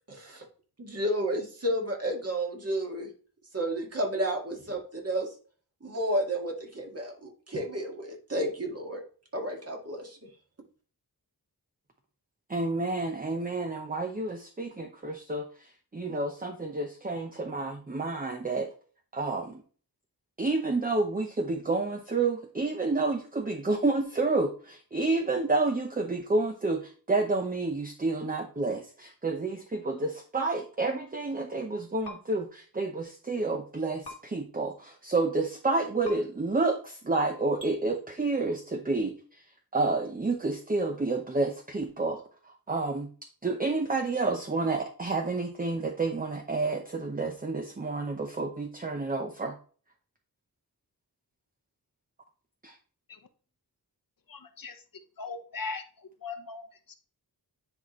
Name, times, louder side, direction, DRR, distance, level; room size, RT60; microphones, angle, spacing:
voice 1, 0.1-0.5 0.8-3.1 3.5-5.3 5.8-9.0 9.3-10.3, right 1 dB, 40° right, 1 dB, 1.9 m, -31 dB
voice 2, 12.5-15.5 15.9-18.7 19.1-19.6 20.4-39.1 39.7-42.2 42.7-43.1 43.4-49.5 52.6-52.7, right 3 dB, 20° right, 4 dB, 0.7 m, -29 dB
sound 1, 32.0-32.2 34.0-34.2 36.0-36.2 37.6-37.7, left 2 dB, 90° left, 1.9 m, -41 dB
voice 3, 54.3-54.8 55.2-55.8 56.2-56.9, left 4 dB, 60° left, 6 dB, 1.0 m, -39 dB
9.9 x 4.3 x 3.1 m, 0.40 s
wide cardioid pair, 100°, 38 cm